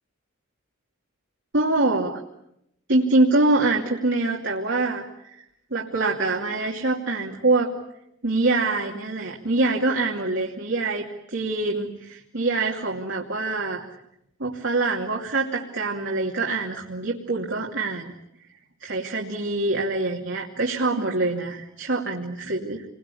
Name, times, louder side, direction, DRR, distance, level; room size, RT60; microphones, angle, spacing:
voice 1, 1.5-2.2 2.9-5.3 5.7-7.7 8.2-13.8 14.4-18.1 18.8-22.8, right 2 dB, 65° right, -1 dB, 2.8 m, -24 dB
29.0 x 22.5 x 8.6 m, 0.80 s
head